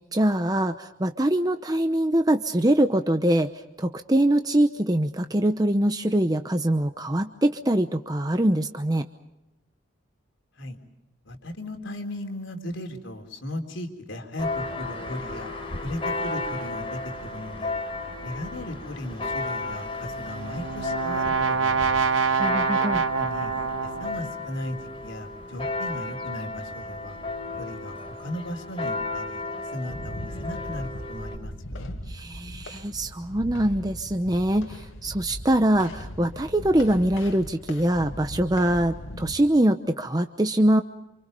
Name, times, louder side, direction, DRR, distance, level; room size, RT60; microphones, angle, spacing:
voice 1, 0.1-3.5 3.8-9.1 22.4-23.0 32.1-40.8, right 1 dB, 20° right, 7 dB, 0.8 m, -23 dB
voice 2, 11.2-15.5 15.8-17.7 18.2-22.1 22.9-23.6 23.8-27.2 27.5-32.0, left 1 dB, 70° left, 5 dB, 3.9 m, -36 dB
Church bell, 14.4-31.4, left 2 dB, 30° left, 4.5 m, -34 dB
Brass instrument, 20.1-24.3, right 5 dB, 80° right, 1.1 m, -25 dB
sound 1, 29.9-39.3, left 1 dB, 85° left, 2.2 m, -39 dB
28.5 x 27.5 x 5.4 m, 0.96 s
head